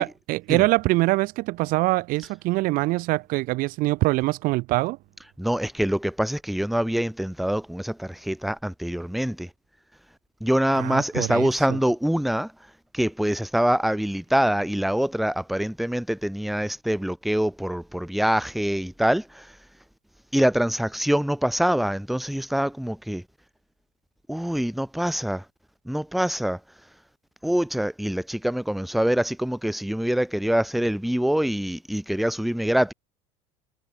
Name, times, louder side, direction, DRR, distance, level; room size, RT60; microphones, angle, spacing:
voice 1, 0.0-5.0 10.7-11.8, right 21 dB, 60° right, 0.4 m, -24 dB
voice 2, 5.4-9.5 10.4-12.5 12.9-19.5 20.3-23.2 24.3-25.4 25.9-26.6 27.4-32.9, equal, ahead, 0.7 m, -25 dB
supercardioid pair, 95°, 17 cm